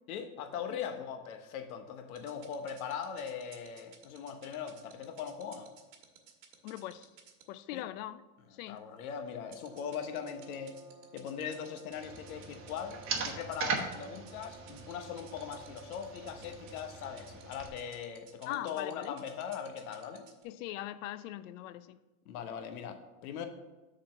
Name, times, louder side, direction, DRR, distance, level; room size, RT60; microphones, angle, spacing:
voice 1, 0.1-5.7 7.7-7.9 8.7-10.8 11.1-20.3 22.3-23.5, left 7 dB, 85° left, 1.0 m, -40 dB
sound 1, 2.2-7.4 9.5-20.4, right 10 dB, 60° right, 1.3 m, -55 dB
voice 2, 6.6-7.1 7.5-8.2 8.5-8.8 18.5-19.2 20.4-22.0, left 14 dB, 65° left, 0.5 m, -41 dB
sound 2, 9.4-18.3, right 3 dB, 5° right, 1.5 m, -57 dB
sound 3, 11.9-17.7, right 5 dB, 30° right, 1.0 m, -40 dB
6.5 x 4.1 x 6.2 m
supercardioid pair, 145°, 42 cm